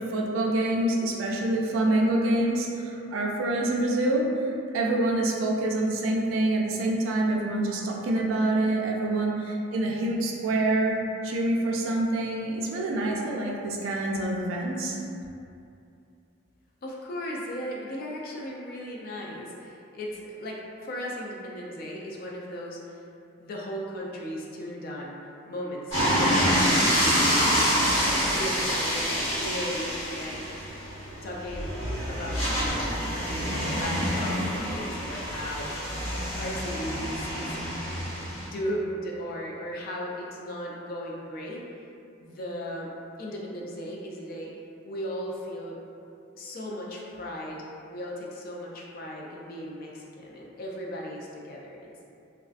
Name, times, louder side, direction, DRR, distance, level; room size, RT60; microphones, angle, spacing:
voice 1, 0.0-15.0, right 1 dB, 80° right, -1 dB, 0.3 m, -26 dB
voice 2, 16.8-23.0 23.4-25.1 25.5-27.7 28.2-30.7 31.2-31.7 32.1-35.7 36.3-37.6 38.4-41.6 42.2-42.9 43.2-44.5 44.8-45.8 46.4-52.0, equal, 45° left, -3 dB, 0.3 m, -36 dB
sound 1, 25.9-38.5, equal, 80° left, 1.4 m, -27 dB
2.3 x 2.2 x 2.4 m, 2.6 s
head